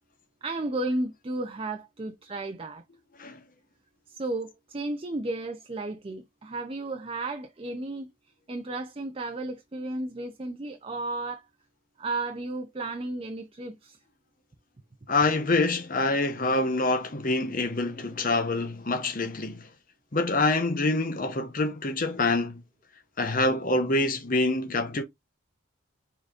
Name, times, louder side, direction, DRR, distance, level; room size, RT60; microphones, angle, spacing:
voice 1, 0.4-2.8 4.1-8.1 8.5-11.5 12.0-14.0, right 2 dB, 25° right, 0.5 m, -33 dB
voice 2, 15.1-19.7 20.1-22.6 23.2-25.0, left 2 dB, 40° left, 0.9 m, -26 dB
5.0 x 3.7 x 2.4 m
head